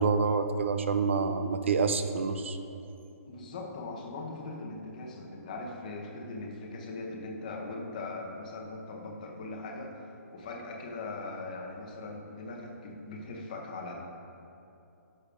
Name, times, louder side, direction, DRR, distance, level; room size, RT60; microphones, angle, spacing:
voice 1, 0.0-2.6, right 5 dB, 45° right, 9 dB, 0.4 m, -27 dB
voice 2, 3.3-13.9, left 2 dB, 30° left, 0 dB, 0.8 m, -40 dB
11.5 x 6.5 x 2.5 m, 2.8 s
hypercardioid pair, 175°, 9 cm